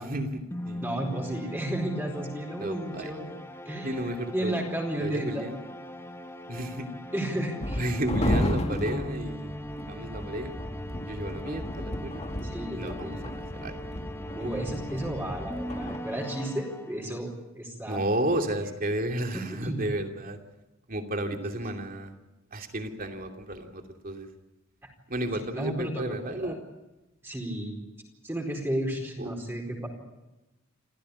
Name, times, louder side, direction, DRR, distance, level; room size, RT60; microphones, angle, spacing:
voice 1, 0.0-0.8 2.6-3.1 3.8-4.5 5.0-5.6 6.5-6.9 7.8-9.5 9.9-10.6 11.0-12.2 12.7-13.2 13.5-13.8 14.4-14.5 17.9-20.4 20.9-22.1 22.5-24.3 25.1-26.6 29.2-29.3, right 1 dB, 45° right, 4 dB, 2.7 m, -32 dB
sound 1, 0.5-17.3, equal, 10° left, 1.4 m, -41 dB
voice 2, 0.8-3.3 3.6-5.4 7.1-7.9 12.4-13.2 14.3-18.0 19.3-19.8 21.3-21.4 25.3-26.6 27.2-27.8 28.2-29.9, right 1 dB, 10° right, 1 dB, 4.6 m, -33 dB
sound 2, 7.6-16.0, left 1 dB, 30° left, 2.0 m, -33 dB
27.5 x 16.0 x 9.8 m, 1.0 s
head